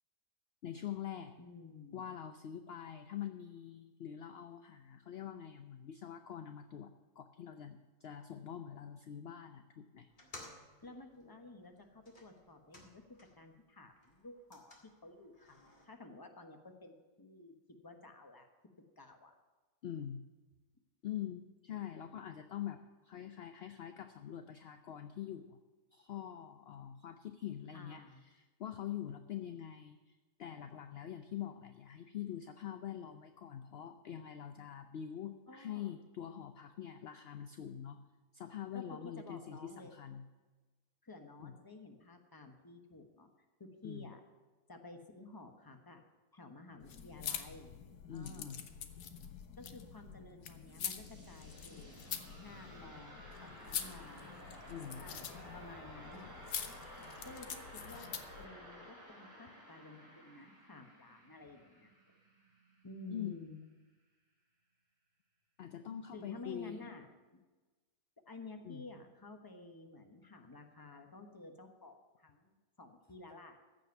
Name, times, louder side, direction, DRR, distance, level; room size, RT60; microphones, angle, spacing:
voice 1, 0.6-1.3 1.9-6.9 7.2-10.1 19.8-20.2 21.0-25.6 25.9-38.0 38.3-40.2 41.4-41.5 43.8-44.1 48.1-48.7 54.7-55.0 63.1-63.4 65.6-66.9 68.6-68.8, left 10 dB, 60° left, 8 dB, 0.6 m, -44 dB
voice 2, 1.4-2.1 10.8-13.0 13.4-14.8 15.0-17.6 17.8-18.5 19.0-19.3 27.7-28.3 35.5-35.9 38.7-39.9 41.0-43.3 43.6-44.2 44.7-46.0 46.3-47.7 48.1-48.6 49.6-52.0 52.4-54.3 54.9-56.3 57.2-61.9 62.8-63.6 66.1-67.4 68.3-73.6, left 2 dB, 15° left, 5 dB, 1.1 m, -53 dB
sound 1, 10.1-13.5 13.8-15.8, left 2 dB, 30° left, 2.1 m, -57 dB
sound 2, 46.8-58.5, left 8 dB, 85° left, 1.4 m, -45 dB
sound 3, 50.4-63.0, equal, 30° right, 4.0 m, -54 dB
15.0 x 5.3 x 9.4 m, 1.3 s
omnidirectional pair, 1.6 m